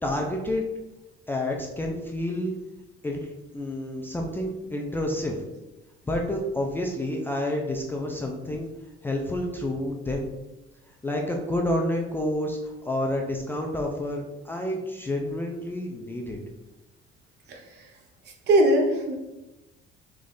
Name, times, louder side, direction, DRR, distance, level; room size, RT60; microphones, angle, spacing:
voice 1, 0.0-0.7 1.3-2.6 3.0-5.4 6.0-8.7 9.0-10.3 11.0-16.4, left 1 dB, 10° left, 0 dB, 0.3 m, -29 dB
voice 2, 18.5-19.1, right 1 dB, 55° right, 2 dB, 0.8 m, -20 dB
3.5 x 3.1 x 3.8 m, 1.0 s
cardioid pair, 175°, 21 cm